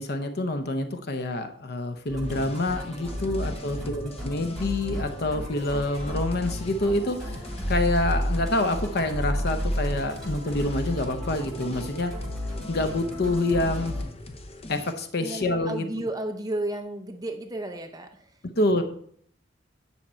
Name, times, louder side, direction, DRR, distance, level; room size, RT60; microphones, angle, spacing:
voice 1, 0.0-12.1 12.7-14.0 14.7-15.9 18.6-18.8, left 2 dB, 60° left, 7 dB, 0.8 m, -27 dB
Musical instrument, 2.1-14.0, equal, ahead, 3.4 m, -32 dB
sound 1, 2.2-14.9, left 1 dB, 35° left, 0.9 m, -43 dB
voice 2, 3.2-4.1 15.2-18.4, right 1 dB, 20° right, 6 dB, 0.7 m, -34 dB
9.9 x 5.9 x 4.3 m, 0.63 s
head